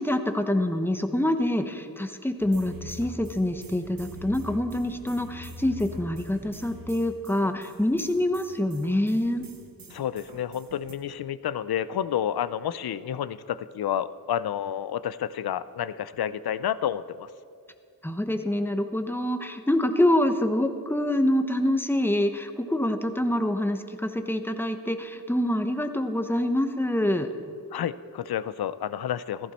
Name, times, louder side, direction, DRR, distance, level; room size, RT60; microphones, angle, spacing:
voice 1, 0.0-9.5 18.0-27.3, left 1 dB, 5° left, 7 dB, 0.9 m, -26 dB
sound 1, 2.4-10.9, equal, 65° right, 1.5 m, -44 dB
voice 2, 9.9-17.3 27.7-29.5, left 10 dB, 90° left, 16 dB, 0.5 m, -30 dB
14.5 x 14.5 x 4.3 m, 2.3 s
wide cardioid pair, 75°, 36 cm